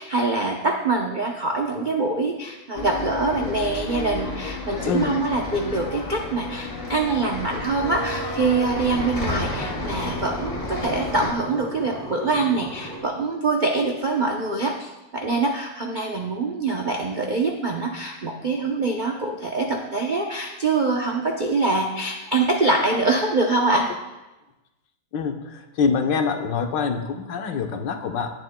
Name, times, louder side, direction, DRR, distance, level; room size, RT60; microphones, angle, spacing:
voice 1, 0.0-23.9, right 3 dB, 60° right, 1 dB, 0.5 m, -24 dB
Bus, 2.8-11.3, left 2 dB, 25° left, 0.8 m, -31 dB
voice 2, 4.9-5.2 25.1-25.4 25.8-28.3, left 5 dB, 80° left, 5 dB, 1.6 m, -24 dB
sound 1, 7.8-13.0, right 1 dB, ahead, 2.0 m, -36 dB
17.5 x 8.9 x 2.2 m, 1.0 s
omnidirectional pair, 2.0 m